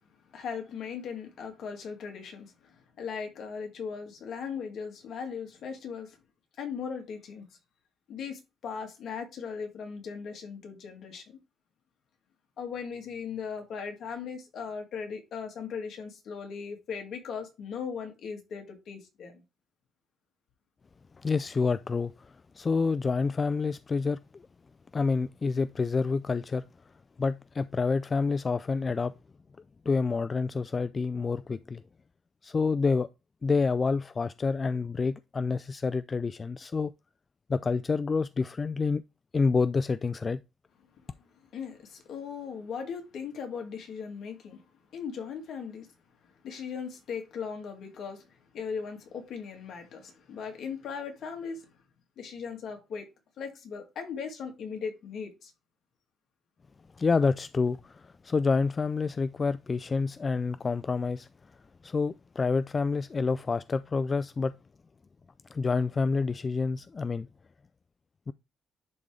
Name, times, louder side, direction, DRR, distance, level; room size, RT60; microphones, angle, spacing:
voice 1, 0.3-6.2 6.6-7.5 8.1-11.4 12.6-19.4 41.4-44.6 44.9-45.9 46.2-51.7 52.2-53.1 53.4-55.5, left 6 dB, 70° left, 2.1 m, -38 dB
voice 2, 21.2-24.5 24.9-26.6 27.2-29.1 29.9-31.8 32.4-33.1 33.4-36.9 37.5-39.0 39.3-40.4 57.0-61.3 61.8-64.5 65.5-67.3 68.3-68.4, left 4 dB, 35° left, 0.3 m, -28 dB
10.5 x 3.7 x 3.3 m
cardioid pair, 90°, 0 cm